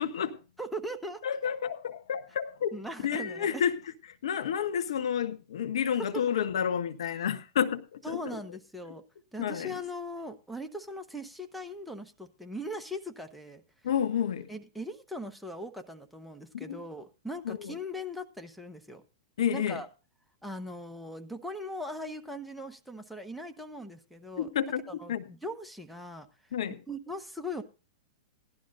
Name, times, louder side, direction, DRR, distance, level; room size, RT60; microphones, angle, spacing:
voice 1, 0.0-0.4 1.2-2.8 3.0-3.8 4.2-8.4 9.4-9.7 13.8-14.5 16.5-16.8 17.4-17.8 19.4-19.8 24.4-24.8 25.1-25.2 26.5-26.8, left 8 dB, 70° left, 1.1 m, -30 dB
voice 2, 0.6-1.2 2.7-3.6 6.1-6.2 8.0-9.0 9.3-13.6 14.5-19.0 19.5-19.9 20.4-24.5 25.0-26.3 26.9-27.6, equal, ahead, 1.2 m, -39 dB
17.5 x 12.0 x 2.7 m
hypercardioid pair, 110°, 3 cm